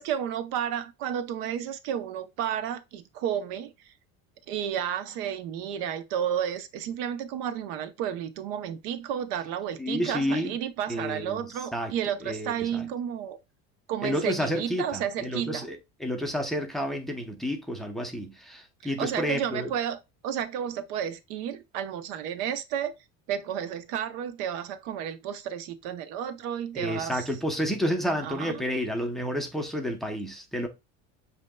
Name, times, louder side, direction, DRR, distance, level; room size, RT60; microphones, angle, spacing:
voice 1, 0.0-3.9 4.5-13.4 13.9-15.7 18.8-22.9 23.3-27.3 28.2-28.7, right 9 dB, 80° right, 0.7 m, -32 dB
voice 2, 9.8-10.5 10.9-11.4 11.7-11.9 12.2-12.8 14.0-19.7 26.8-30.7, equal, ahead, 0.6 m, -30 dB
7.4 x 2.8 x 2.2 m
cardioid pair, 155°, 31 cm